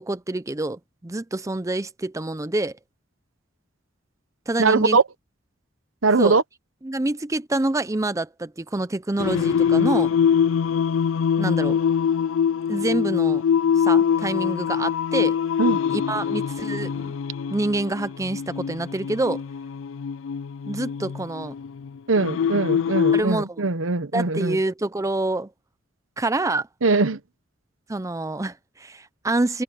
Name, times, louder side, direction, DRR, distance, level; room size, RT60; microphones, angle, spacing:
voice 1, 0.0-2.8 4.5-5.0 6.2-6.4 6.8-10.1 11.4-11.8 12.7-13.4 13.8-15.4 15.9-17.1 17.5-19.4 20.7-21.5 23.1-23.7 24.1-25.5 26.2-26.7 27.9-29.6, right 2 dB, 15° right, 0.5 m, -27 dB
voice 2, 4.6-5.0 6.0-6.4 15.6-15.8 22.1-24.6 26.8-27.2, right 4 dB, 85° right, 1.0 m, -21 dB
Singing, 9.2-23.2, left 7 dB, 80° left, 0.4 m, -23 dB
head